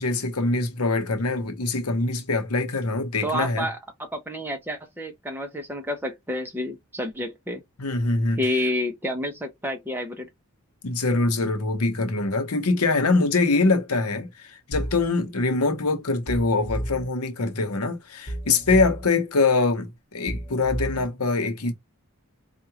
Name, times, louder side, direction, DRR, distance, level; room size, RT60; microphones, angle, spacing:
voice 1, 0.0-3.7 7.8-8.4 10.8-21.7, left 3 dB, 80° left, 0.9 m, -24 dB
voice 2, 3.2-7.6 8.4-10.3, left 1 dB, 10° right, 0.8 m, -29 dB
sound 1, 14.7-15.1 16.3-17.1 18.3-19.1 20.3-21.1, right 1 dB, 25° left, 1.3 m, -31 dB
4.6 x 2.4 x 2.9 m
head